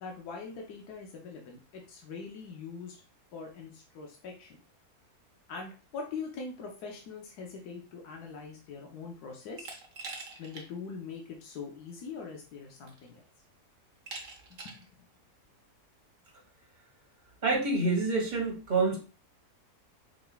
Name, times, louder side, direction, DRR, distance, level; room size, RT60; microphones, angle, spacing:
voice 1, 0.0-3.0 3.3-4.6 5.5-9.7 10.4-13.2 14.5-14.8, left 5 dB, 85° left, 0 dB, 1.3 m, -42 dB
Glass, 9.6-10.7 11.1-11.2 12.3-12.4 12.9-13.3 14.1-14.9, right 3 dB, 60° right, 1.3 m, -43 dB
voice 2, 17.4-19.0, right 3 dB, 30° right, -1 dB, 1.5 m, -27 dB
4.9 x 3.8 x 2.3 m, 0.35 s
omnidirectional pair, 1.6 m